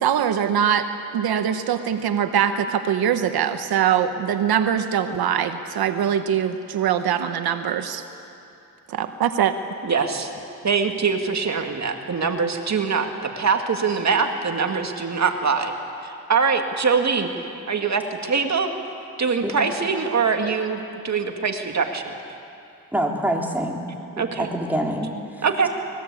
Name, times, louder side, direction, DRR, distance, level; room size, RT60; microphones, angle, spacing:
voice 1, 0.0-0.9 1.1-8.0 8.9-9.5, right 9 dB, 85° right, 8 dB, 1.1 m, -22 dB
voice 2, 9.8-10.3 10.6-13.1 13.4-15.7 16.0-17.3 17.7-18.7 19.2-22.1 24.2-24.5 25.4-25.7, right 5 dB, 50° right, 4 dB, 2.1 m, -23 dB
voice 3, 22.9-23.8 24.1-25.7, right 1 dB, 5° right, 0 dB, 3.6 m, -26 dB
24.5 x 21.0 x 8.5 m, 2.7 s
cardioid pair, 80°, 36 cm